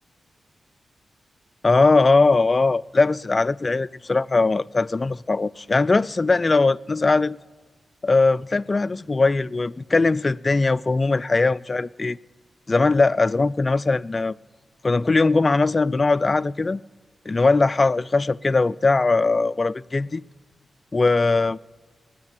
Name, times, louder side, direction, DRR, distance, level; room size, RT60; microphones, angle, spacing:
voice 1, 1.6-7.4 8.0-12.2 12.7-14.3 14.8-16.8 17.3-20.2 20.9-21.6, left 3 dB, 40° left, 0.3 m, -20 dB
19.5 x 6.7 x 8.7 m
supercardioid pair, 45°, 0 cm